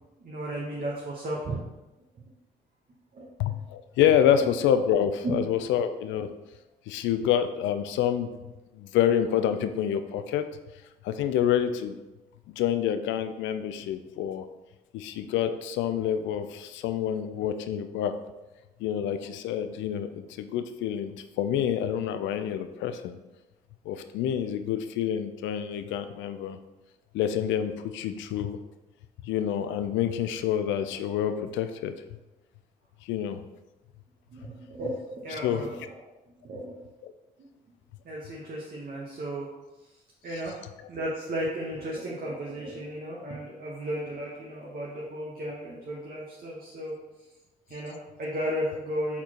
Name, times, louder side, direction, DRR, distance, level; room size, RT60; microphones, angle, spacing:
voice 1, 0.2-1.6 3.1-3.6 4.4-4.7 5.2-5.3 34.3-35.9 36.4-36.8 37.4-37.5 38.0-39.5 40.2-40.6 40.9-47.0 47.7-49.2, right 1 dB, 45° right, -4 dB, 1.0 m, -34 dB
voice 2, 3.4-6.3 6.9-8.4 8.7-10.5 11.0-12.0 12.5-14.5 14.9-18.1 18.8-23.2 23.9-26.6 27.1-28.6 29.2-31.9 33.0-33.4 35.4-35.6 37.0-37.1, left 9 dB, 65° left, 10 dB, 0.4 m, -27 dB
4.2 x 4.2 x 2.9 m, 1.1 s
hypercardioid pair, 45°, 21 cm